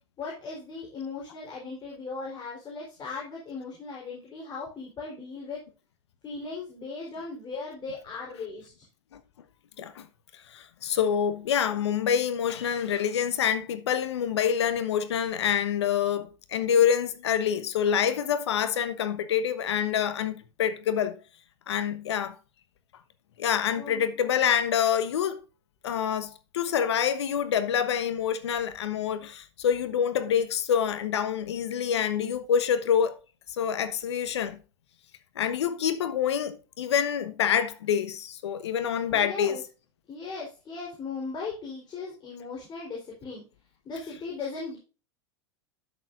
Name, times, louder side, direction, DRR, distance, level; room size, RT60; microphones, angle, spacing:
voice 1, 0.2-5.6 6.2-8.9 23.8-24.1 39.1-39.6 40.1-43.4 43.8-44.8, left 4 dB, 30° left, 3.9 m, -38 dB
voice 2, 10.3-21.2 21.7-22.3 23.4-25.4 25.8-33.2 33.5-34.6 35.3-39.6, left 8 dB, 75° left, 1.2 m, -26 dB
12.5 x 6.9 x 2.5 m
hypercardioid pair, 90°, 14 cm